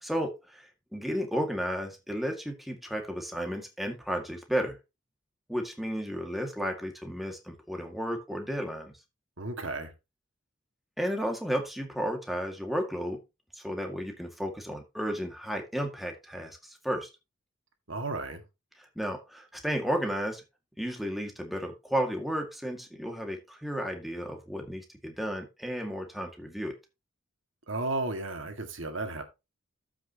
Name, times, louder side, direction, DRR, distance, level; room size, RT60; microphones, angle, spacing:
voice 1, 0.0-4.8 5.5-8.9 11.0-13.2 13.5-17.1 18.8-20.4 20.8-26.7, equal, ahead, 2.0 m, -33 dB
voice 2, 9.4-9.9 17.9-18.4 27.7-29.2, right 2 dB, 70° right, 1.9 m, -33 dB
14.0 x 6.0 x 2.9 m
head